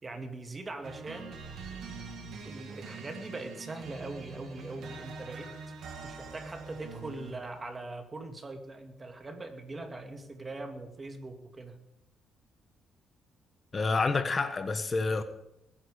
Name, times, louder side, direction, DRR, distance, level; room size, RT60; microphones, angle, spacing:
voice 1, 0.0-1.4 2.4-5.5 6.0-11.8, right 2 dB, 25° right, 2.5 m, -41 dB
sound 1, 0.8-7.5, right 4 dB, 75° right, 3.1 m, -44 dB
voice 2, 13.7-15.2, left 3 dB, 35° left, 1.3 m, -28 dB
20.5 x 9.5 x 5.2 m
cardioid pair, 90°, 0 cm